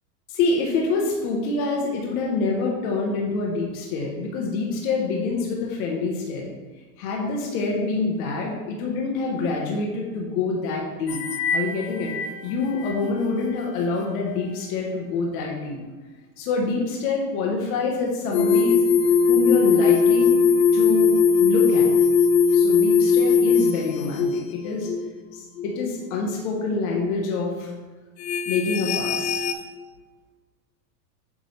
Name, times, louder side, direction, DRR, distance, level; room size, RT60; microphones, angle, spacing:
voice 1, 0.3-6.5 7.0-11.2 11.5-12.1 12.4-15.8 16.4-18.8 19.3-20.4 20.7-21.9 22.5-24.9 25.3-27.7 28.5-29.4, left 3 dB, 55° left, -1 dB, 1.4 m, -26 dB
sound 1, 11.1-11.7 12.0-12.3 12.8-12.9 18.3-24.4 24.9-25.1 25.6-25.8 26.3-26.4 28.2-29.5, left 5 dB, 75° left, 0.9 m, -19 dB
8.3 x 3.8 x 3.3 m, 1.3 s
supercardioid pair, 140°, 50 cm